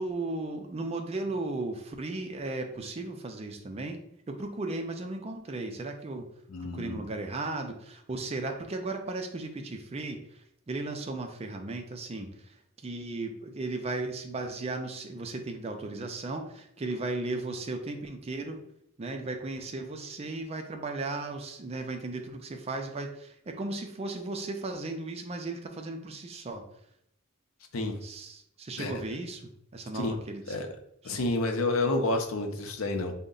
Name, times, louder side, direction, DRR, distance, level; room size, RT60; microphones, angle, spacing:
voice 1, 0.0-4.0 4.3-6.3 6.6-18.6 19.0-26.6 28.0-30.6 31.1-31.2, right 2 dB, 30° right, 4 dB, 0.4 m, -36 dB
voice 2, 6.5-7.0 27.7-28.0 28.8-28.9 29.9-30.1 30.5-30.7 31.0-33.1, left 2 dB, 80° left, 4 dB, 0.6 m, -29 dB
3.8 x 2.1 x 3.8 m, 0.74 s
head